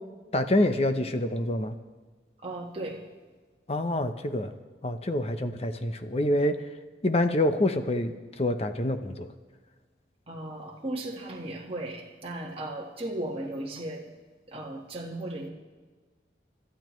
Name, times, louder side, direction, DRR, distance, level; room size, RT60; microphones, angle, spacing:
voice 1, 0.3-1.8 3.7-4.5 4.8-6.7 7.0-9.3, left 1 dB, 35° left, 9 dB, 0.8 m, -26 dB
voice 2, 2.4-3.0 10.3-14.1 14.5-15.5, right 1 dB, 30° right, -3 dB, 1.5 m, -36 dB
25.5 x 12.5 x 3.2 m, 1.4 s
head